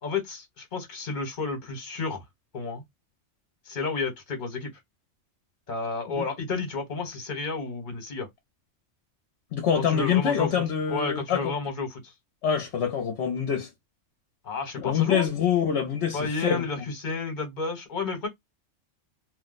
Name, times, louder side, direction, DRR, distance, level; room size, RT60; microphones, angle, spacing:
voice 1, 0.0-2.2 2.5-2.8 3.7-4.7 5.7-8.3 9.7-10.5 10.9-12.1 14.4-15.3 16.1-18.3, left 4 dB, 40° left, 1.3 m, -31 dB
voice 2, 9.5-11.5 12.4-13.7 14.8-16.6, left 8 dB, 65° left, 0.9 m, -25 dB
2.5 x 2.1 x 3.9 m
omnidirectional pair, 1.2 m